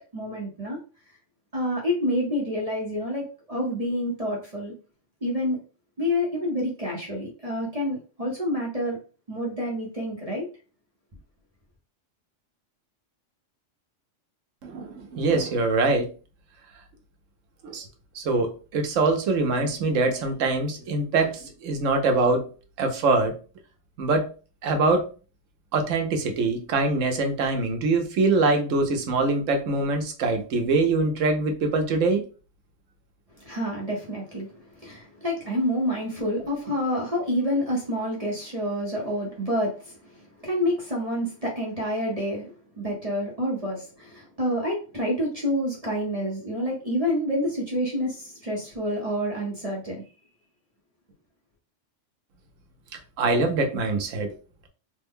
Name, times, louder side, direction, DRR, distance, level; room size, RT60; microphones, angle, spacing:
voice 1, 0.1-0.8 1.5-4.7 5.2-5.6 6.0-9.0 9.3-10.4 33.4-40.0 40.4-50.0, equal, 35° right, -2 dB, 0.8 m, -28 dB
voice 2, 14.6-16.1 17.6-17.8 18.1-22.4 22.8-23.4 24.0-24.3 24.6-25.1 25.7-32.2 53.2-54.3, right 3 dB, 85° right, 4 dB, 1.1 m, -23 dB
3.2 x 2.2 x 3.5 m, 0.36 s
omnidirectional pair, 1.3 m